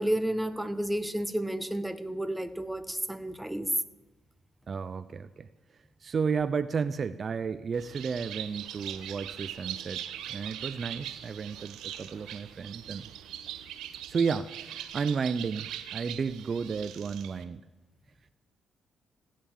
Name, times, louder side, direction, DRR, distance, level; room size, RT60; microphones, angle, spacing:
voice 1, 0.0-3.7, right 1 dB, 5° right, 11 dB, 0.9 m, -31 dB
voice 2, 4.7-5.5 6.0-10.0 10.3-13.1 14.1-17.6, right 5 dB, 45° right, 14 dB, 0.4 m, -32 dB
Bird, 7.7-17.4, right 11 dB, 85° right, 0.9 m, -41 dB
15.5 x 10.0 x 7.3 m, 1.1 s
cardioid pair, 90°, 0 cm